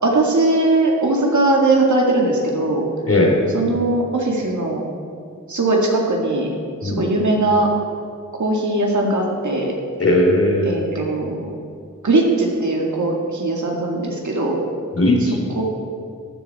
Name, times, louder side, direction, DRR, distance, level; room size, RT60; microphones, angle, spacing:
voice 1, 0.0-2.9 3.5-4.9 5.5-6.5 6.8-7.7 8.3-9.7 10.6-11.5 12.0-14.6 15.6-15.7, right 2 dB, 65° right, -1 dB, 2.1 m, -19 dB
voice 2, 3.1-3.4 6.8-7.0 10.0-10.8 14.9-15.4, left 1 dB, 50° left, -1 dB, 2.8 m, -17 dB
14.5 x 11.0 x 4.3 m, 2.4 s
wide cardioid pair, 75°, 31 cm